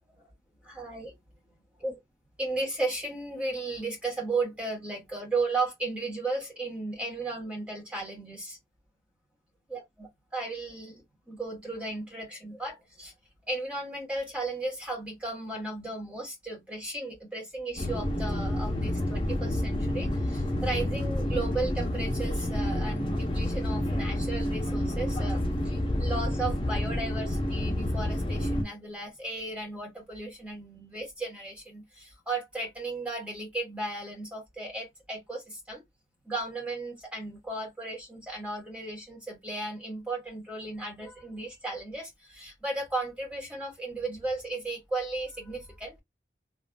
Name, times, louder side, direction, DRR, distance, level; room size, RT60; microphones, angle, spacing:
voice 1, 0.6-1.2 1.8-1.9 2.4-8.6 9.7-13.1 13.5-25.4 26.0-35.8 36.2-46.0, right 2 dB, 5° right, 1.1 m, -35 dB
sound 1, 17.8-28.6, left 1 dB, 25° left, 0.8 m, -29 dB
3.2 x 2.5 x 2.3 m
head